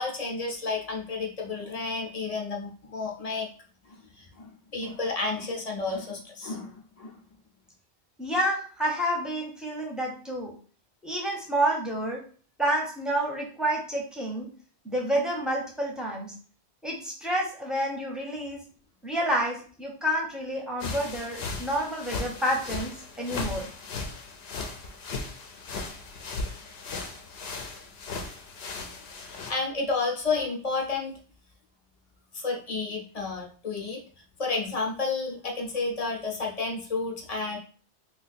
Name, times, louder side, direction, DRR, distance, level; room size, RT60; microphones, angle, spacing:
voice 1, 0.0-3.5 3.9-7.2 29.2-31.1 32.3-34.0 34.4-37.6, left 3 dB, 40° left, 0 dB, 0.6 m, -31 dB
voice 2, 8.2-10.5 11.0-12.2 12.6-14.5 14.8-16.3 16.8-18.6 19.0-22.9 23.2-23.7, right 1 dB, ahead, -2 dB, 0.6 m, -29 dB
sound 1, 20.8-29.5, left 3 dB, 65° left, 0.8 m, -37 dB
2.7 x 2.4 x 4.1 m, 0.42 s
omnidirectional pair, 1.2 m